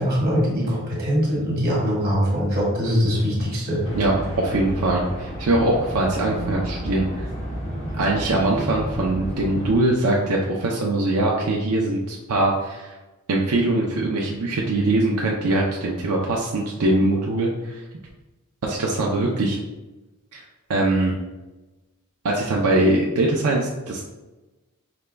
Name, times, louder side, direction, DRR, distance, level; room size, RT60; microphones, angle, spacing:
voice 1, 0.0-3.8, equal, 45° right, -4 dB, 1.5 m, -22 dB
sound 1, 3.8-9.8, equal, 30° left, 1.0 m, -31 dB
voice 2, 4.0-7.3 8.0-12.9 13.3-17.8 18.6-19.6 20.3-20.4 20.7-21.1 22.2-24.0, right 2 dB, 80° right, -2 dB, 0.5 m, -22 dB
4.9 x 2.2 x 3.3 m, 1.1 s
head